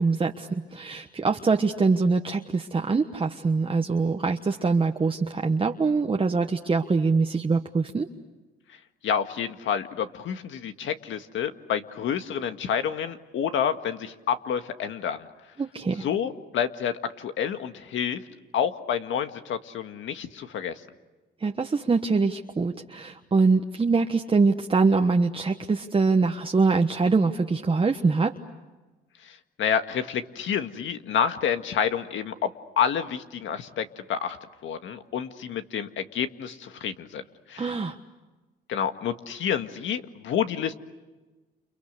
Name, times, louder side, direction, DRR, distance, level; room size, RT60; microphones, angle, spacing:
voice 1, 0.0-8.1 15.6-16.0 21.4-28.3 37.6-37.9, right 4 dB, 25° right, 3 dB, 1.3 m, -23 dB
voice 2, 9.0-15.3 15.9-18.2 18.5-20.8 29.2-32.5 32.8-34.4 34.6-37.2 37.5-37.7 38.7-40.7, left 8 dB, 75° left, 8 dB, 1.8 m, -29 dB
29.5 x 29.5 x 6.7 m, 1.2 s
cardioid pair, 90°, 20 cm